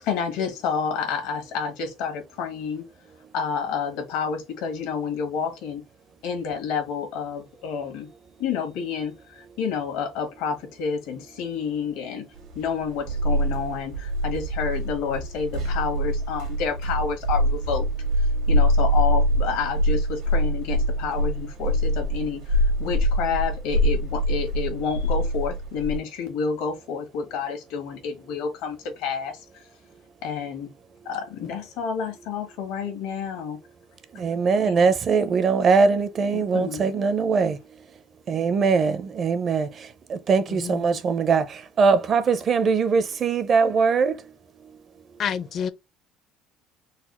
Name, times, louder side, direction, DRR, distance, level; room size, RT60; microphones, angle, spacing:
voice 1, 0.0-2.8 3.3-5.8 6.2-8.1 8.4-12.3 12.5-17.9 18.5-29.4 30.2-30.7 31.0-33.6 34.5-34.9 36.3-36.9, left 6 dB, 85° left, 1.3 m, -29 dB
sound 1, 12.5-26.0, equal, 85° right, 1.6 m, -24 dB
voice 2, 34.1-37.6 38.3-44.2, right 5 dB, 45° right, 0.5 m, -21 dB
voice 3, 40.5-41.0 45.2-45.7, left 8 dB, 50° left, 0.5 m, -29 dB
4.0 x 2.0 x 3.0 m
cardioid pair, 105°, 0 cm